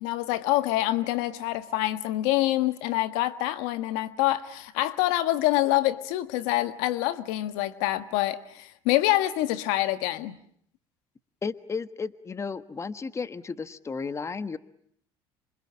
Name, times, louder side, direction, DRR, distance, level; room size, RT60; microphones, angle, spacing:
voice 1, 0.0-10.4, left 16 dB, 80° left, 1.5 m, -26 dB
voice 2, 11.4-14.6, left 5 dB, 25° left, 1.3 m, -33 dB
27.5 x 25.0 x 8.6 m
supercardioid pair, 90°, 11 cm